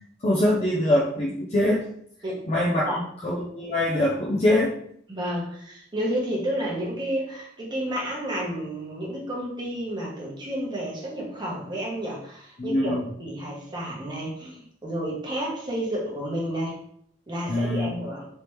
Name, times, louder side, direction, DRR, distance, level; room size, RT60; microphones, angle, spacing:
voice 1, 0.2-1.9 2.5-2.9 3.2-4.8 12.6-13.0 17.5-17.9, left 1 dB, 35° left, -4 dB, 0.5 m, -23 dB
voice 2, 2.2-3.1 5.1-16.7 17.3-18.3, right 1 dB, 25° right, -3 dB, 1.0 m, -31 dB
3.4 x 2.9 x 3.1 m, 0.67 s
head